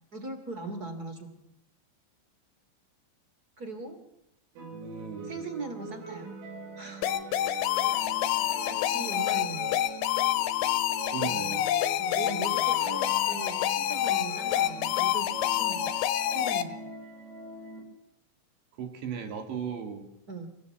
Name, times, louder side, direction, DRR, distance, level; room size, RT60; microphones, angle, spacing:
voice 1, 0.1-1.3 3.6-4.0 5.3-6.3 6.8-7.1 8.6-9.8 12.0-15.3 15.5-15.9 16.3-16.8 20.3-20.5, right 3 dB, 25° right, 8 dB, 2.0 m, -39 dB
voice 2, 4.6-5.5 11.1-11.7 18.8-20.1, right 7 dB, 60° right, 6 dB, 4.7 m, -37 dB
sound 1, 4.6-17.8, right 3 dB, 80° right, 8.8 m, -43 dB
sound 2, 7.0-16.6, left 12 dB, 80° left, 3.5 m, -27 dB
29.0 x 16.5 x 8.1 m, 0.84 s
omnidirectional pair, 5.9 m